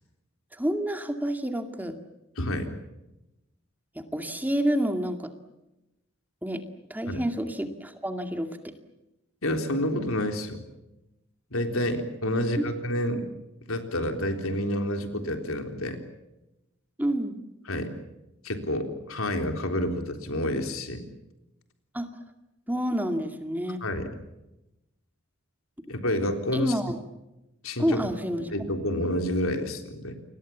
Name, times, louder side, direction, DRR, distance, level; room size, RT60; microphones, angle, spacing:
voice 1, 0.5-2.0 4.0-5.3 6.4-6.6 6.9-8.7 12.3-12.4 17.0-17.4 21.9-22.1 22.7-23.8 26.5-27.0 27.8-28.5, equal, 10° right, 6 dB, 2.2 m, -28 dB
voice 2, 2.4-2.7 7.1-7.2 9.4-10.6 11.5-13.3 13.7-16.0 17.7-17.9 18.4-21.0 23.8-24.2 25.9-26.8 27.6-28.1 28.5-30.2, left 1 dB, 85° left, 5 dB, 3.8 m, -29 dB
29.0 x 22.5 x 7.3 m, 0.95 s
head